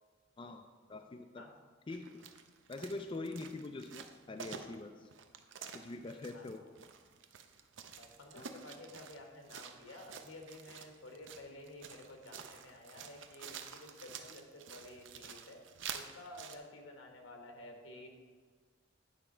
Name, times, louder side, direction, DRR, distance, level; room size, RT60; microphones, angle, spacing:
voice 1, 0.4-1.4 1.9-2.2 2.7-5.1 5.7-6.6 8.4-8.5, left 2 dB, 25° left, 6 dB, 0.3 m, -44 dB
sound 1, 1.9-16.6, right 7 dB, 65° right, 0.6 m, -50 dB
voice 2, 8.0-15.6 15.9-18.1, left 1 dB, 85° left, 3 dB, 1.2 m, -52 dB
9.1 x 5.0 x 4.4 m, 1.5 s
head